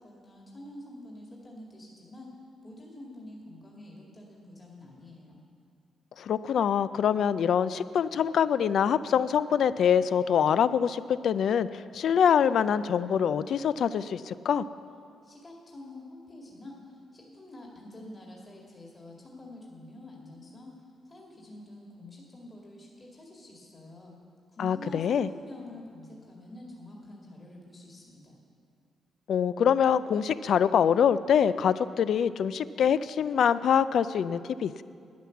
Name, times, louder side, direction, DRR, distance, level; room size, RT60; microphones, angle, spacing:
voice 1, 0.0-2.3 2.6-5.4 15.2-20.7 21.1-24.1 24.5-28.4, left 1 dB, 30° left, -2 dB, 2.0 m, -47 dB
voice 2, 6.2-14.6 24.6-25.3 29.3-34.8, left 8 dB, 70° left, 15 dB, 0.4 m, -25 dB
10.5 x 10.0 x 7.1 m, 2.3 s
cardioid pair, 85°, 0 cm